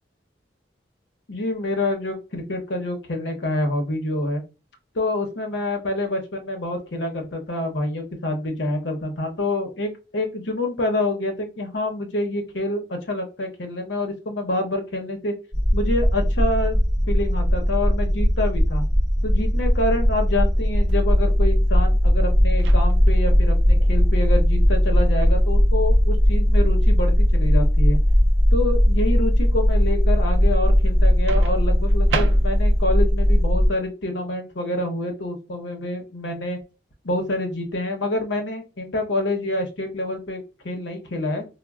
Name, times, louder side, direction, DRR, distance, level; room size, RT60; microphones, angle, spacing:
voice 1, 1.3-4.4 4.9-15.3 15.7-18.8 19.2-28.0 28.5-36.6 37.0-41.5, left 1 dB, 75° left, 3 dB, 0.8 m, -27 dB
sound 1, 15.5-33.7, equal, 30° right, 1.1 m, -18 dB
Microwave oven, 22.6-23.3 25.3-25.5 31.3-32.9, right 5 dB, 75° right, 0.4 m, -33 dB
4.0 x 2.2 x 2.3 m, 0.31 s
head